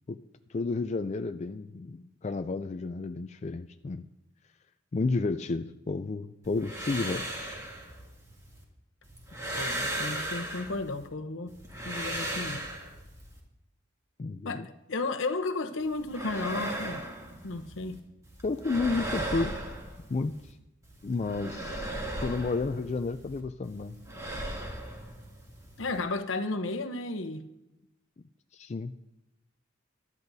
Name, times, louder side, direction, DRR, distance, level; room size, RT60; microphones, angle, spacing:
voice 1, 0.5-4.0 4.9-7.7 14.2-14.7 18.4-19.6 20.1-20.6 21.0-21.9 22.2-24.0 28.5-28.9, left 3 dB, 35° left, 0.4 m, -32 dB
sound 1, 6.4-8.6 9.0-11.1 11.5-13.4 15.8-18.0 18.2-20.5 20.8-23.4 23.6-26.0, right 1 dB, 15° right, 2.5 m, -37 dB
voice 2, 9.5-11.5 11.8-12.6 14.4-17.0 17.4-18.0 25.8-27.5, left 3 dB, 75° left, 0.9 m, -33 dB
22.5 x 12.0 x 2.7 m
head